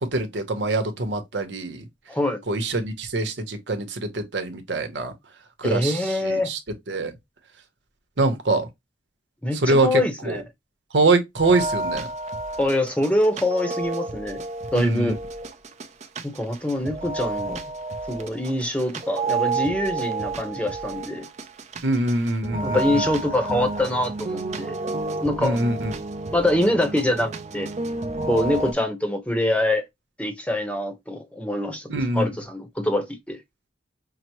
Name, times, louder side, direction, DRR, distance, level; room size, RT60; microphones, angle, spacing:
voice 1, 0.0-1.9 2.5-5.1 5.6-6.6 6.9-7.1 8.2-8.7 9.5-10.4 10.9-12.1 14.7-15.2 21.8-23.0 25.4-25.9 31.9-32.3, right 2 dB, 90° right, 0.9 m, -24 dB
voice 2, 2.1-2.4 5.6-6.5 9.4-10.4 12.6-14.4 14.7-15.2 16.2-17.6 18.1-21.3 22.6-24.7 25.2-25.6 26.3-27.7 28.2-29.8 30.2-31.9 32.1-33.4, left 1 dB, 5° left, 0.8 m, -24 dB
sound 1, 11.4-28.7, right 3 dB, 40° right, 0.5 m, -30 dB
5.7 x 2.0 x 2.9 m
head